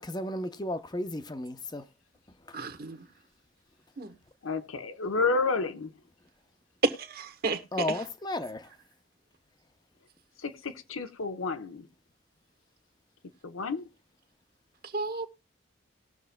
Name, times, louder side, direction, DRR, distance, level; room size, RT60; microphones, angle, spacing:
voice 1, 0.0-1.8 2.5-2.6 7.7-8.7, left 1 dB, 20° left, 0.6 m, -34 dB
voice 2, 2.5-3.0 4.0-4.1 6.8-7.6 7.9-8.0 14.9-15.3, right 3 dB, 50° right, 1.2 m, -31 dB
voice 3, 4.4-5.9 10.4-11.9 13.4-13.9, left 3 dB, 90° left, 0.9 m, -30 dB
19.5 x 6.6 x 2.2 m
head